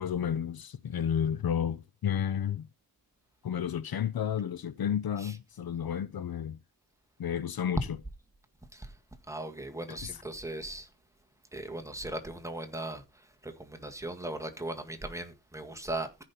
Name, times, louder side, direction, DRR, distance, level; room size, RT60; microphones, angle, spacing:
voice 1, 0.0-2.7 3.4-6.6 7.2-7.8 9.9-10.2, left 8 dB, 70° left, 0.7 m, -31 dB
voice 2, 9.3-10.9 11.5-16.1, right 1 dB, 10° right, 1.7 m, -38 dB
14.5 x 5.4 x 4.1 m
wide cardioid pair, 145°, 38 cm